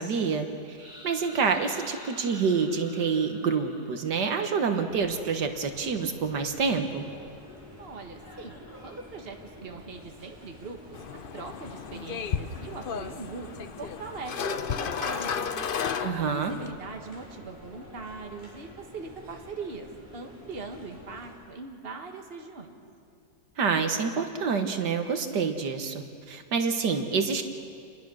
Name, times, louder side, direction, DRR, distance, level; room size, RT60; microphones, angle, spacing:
voice 1, 0.0-7.1 16.0-16.5 23.6-27.4, right 5 dB, 80° right, 6 dB, 1.9 m, -27 dB
sound 1, 0.8-4.6, left 1 dB, 40° left, 3.9 m, -48 dB
sound 2, 4.9-21.3, left 1 dB, 10° right, 5.7 m, -49 dB
voice 2, 7.8-11.0 11.3-13.5 13.8-15.5 16.1-22.7, right 4 dB, 35° right, 3 dB, 1.8 m, -41 dB
sound 3, 10.9-16.7, left 7 dB, 65° left, 0.5 m, -33 dB
28.5 x 21.0 x 6.3 m, 2.4 s
omnidirectional pair, 1.8 m